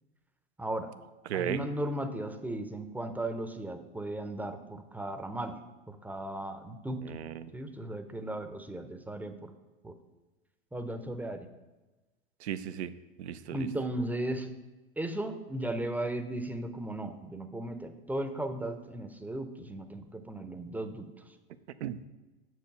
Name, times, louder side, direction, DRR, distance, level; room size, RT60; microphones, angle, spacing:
voice 1, 0.6-0.9 1.3-5.6 5.9-7.2 7.5-9.5 9.8-9.9 10.7-11.5 13.5-14.5 15.0-21.4, right 1 dB, 5° right, 8 dB, 0.6 m, -36 dB
voice 2, 1.3-1.6 7.0-7.5 12.4-12.9 13.2-13.7 21.8-22.0, right 10 dB, 90° right, 12 dB, 0.6 m, -35 dB
6.9 x 4.8 x 6.6 m, 1.1 s
hypercardioid pair, 105°, 32 cm